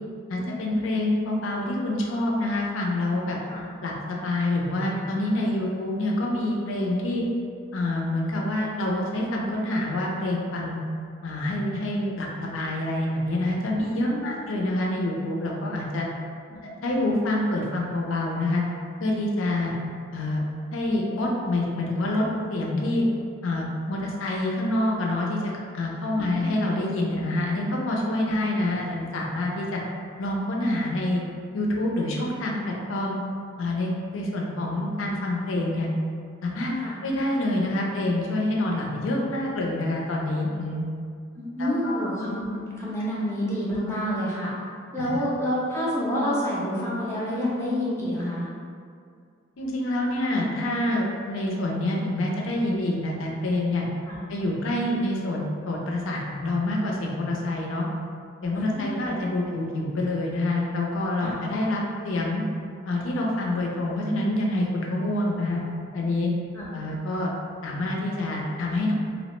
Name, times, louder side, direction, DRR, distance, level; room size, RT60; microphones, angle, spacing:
voice 1, 0.3-3.4 3.8-7.2 7.7-10.8 11.2-16.1 16.6-18.6 19.0-19.7 20.1-20.4 20.7-22.2 22.5-23.0 23.4-25.4 25.7-29.8 30.2-31.2 31.5-33.2 33.6-35.9 36.4-36.7 37.0-40.9 41.6-42.0 45.0-45.1 49.6-53.9 54.3-57.9 58.4-62.4 62.9-65.6 65.9-66.3 66.7-67.3 67.6-68.9, left 1 dB, 70° left, -2 dB, 0.5 m, -27 dB
voice 2, 13.8-14.5 16.5-16.6 26.2-26.6 36.8-37.0 41.4-44.5 44.9-48.5 54.1-54.2 58.5-59.1 61.2-61.3 66.5-66.7, equal, 15° left, -7 dB, 0.4 m, -29 dB
2.8 x 2.0 x 3.0 m, 2.2 s
head